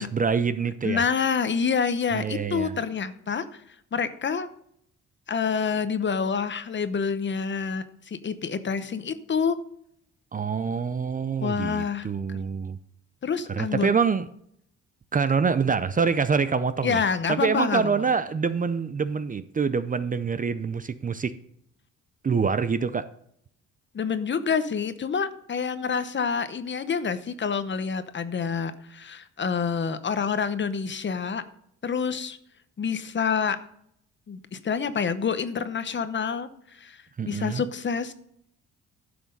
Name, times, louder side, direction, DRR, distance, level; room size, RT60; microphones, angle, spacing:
voice 1, 0.0-1.0 2.1-2.8 10.3-12.8 13.5-14.3 15.1-17.0 17.3-21.4 22.2-23.1 37.2-37.6, right 5 dB, 25° right, 13 dB, 0.5 m, -25 dB
voice 2, 0.8-3.6 3.9-4.5 5.3-9.6 11.4-12.4 13.2-13.9 16.8-17.9 23.9-31.4 31.8-32.4 32.8-33.6 34.3-38.1, left 6 dB, 40° left, 12 dB, 0.9 m, -27 dB
11.5 x 6.1 x 5.3 m, 0.71 s
cardioid pair, 90°, 30 cm